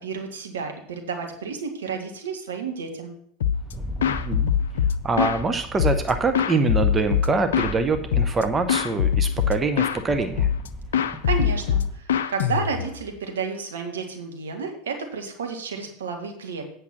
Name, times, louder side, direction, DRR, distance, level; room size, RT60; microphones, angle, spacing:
voice 1, 0.0-3.2 11.2-12.0 12.3-16.6, right 5 dB, 75° right, 4 dB, 1.7 m, -31 dB
sound 1, 3.4-3.7 4.0-5.4 5.8-7.8 8.1-8.4 8.7-10.0 10.4-10.7 10.9-13.0, left 8 dB, 70° left, 0.5 m, -23 dB
Rattle, 3.5-12.0, left 1 dB, 5° right, 1.5 m, -38 dB
voice 2, 4.1-4.5 5.0-10.5, right 3 dB, 25° right, 8 dB, 0.9 m, -24 dB
8.4 x 6.4 x 6.0 m, 0.66 s
figure-of-eight pair, 80°, 0 cm